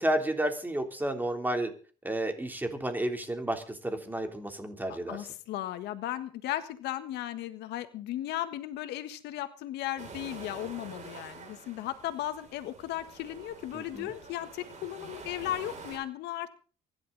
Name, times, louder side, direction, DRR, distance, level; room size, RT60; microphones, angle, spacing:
voice 1, 0.0-1.7 2.0-5.2 13.7-14.1, right 1 dB, 10° right, 4 dB, 3.6 m, -31 dB
voice 2, 5.1-16.5, left 13 dB, 85° left, 10 dB, 1.6 m, -36 dB
sound 1, 10.0-16.0, right 4 dB, 45° right, 6.7 m, -47 dB
24.0 x 11.5 x 4.1 m, 0.39 s
cardioid pair, 110°, 17 cm